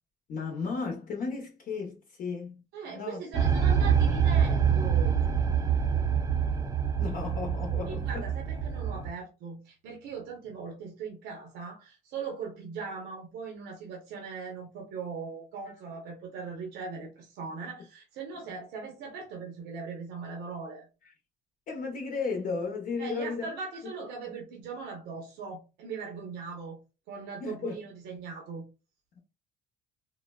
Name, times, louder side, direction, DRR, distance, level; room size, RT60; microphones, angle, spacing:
voice 1, 0.3-3.2 7.0-8.3 21.7-23.5 27.4-27.8, left 4 dB, 55° left, 0.8 m, -34 dB
voice 2, 2.7-5.2 7.9-20.9 23.0-26.8 27.1-28.6, right 5 dB, 85° right, 0.8 m, -39 dB
sound 1, 3.3-9.1, right 7 dB, 20° right, 0.5 m, -26 dB
3.7 x 2.1 x 2.2 m
cardioid pair, 110°, 17 cm